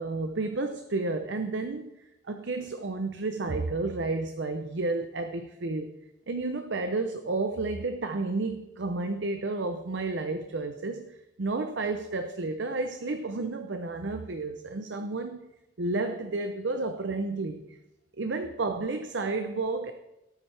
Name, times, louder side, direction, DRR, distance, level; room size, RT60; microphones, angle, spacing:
voice 1, 0.0-1.9 2.3-5.9 6.3-15.4 15.8-17.8 18.2-19.9, right 3 dB, 70° right, 8 dB, 0.7 m, -31 dB
18.5 x 8.8 x 3.4 m, 0.94 s
head